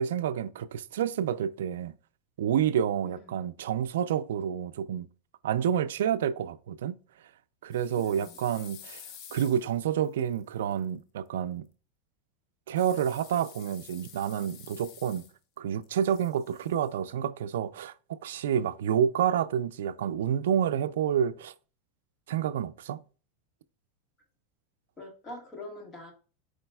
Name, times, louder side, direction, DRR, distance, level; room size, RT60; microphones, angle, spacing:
voice 1, 0.0-1.9 2.4-5.1 5.4-7.0 7.6-9.0 9.3-11.7 12.7-15.3 15.6-21.5 22.3-23.0, right 9 dB, 85° right, 0.3 m, -29 dB
voice 2, 3.0-3.4 8.0-8.4 25.0-26.1, left 2 dB, 20° left, 1.5 m, -44 dB
sound 1, 7.7-10.8 12.8-15.6 15.8-16.9, left 8 dB, 45° left, 0.7 m, -50 dB
4.8 x 4.0 x 2.3 m
supercardioid pair, 125°, 0 cm